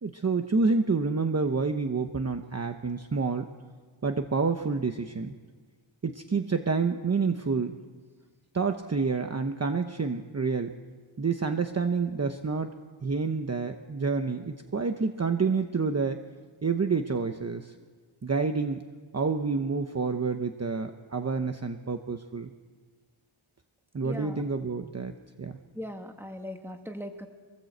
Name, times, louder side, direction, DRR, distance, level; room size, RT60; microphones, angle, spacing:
voice 1, 0.0-3.5 4.0-5.4 6.0-7.8 8.5-10.7 11.2-12.7 13.0-16.2 16.6-17.7 18.2-18.8 19.1-22.5 23.9-25.6, right 4 dB, 30° right, 6 dB, 1.0 m, -28 dB
voice 2, 24.0-24.4 25.7-27.3, equal, 5° right, 4 dB, 1.9 m, -39 dB
25.0 x 17.5 x 8.0 m, 1.5 s
wide cardioid pair, 135°, 49 cm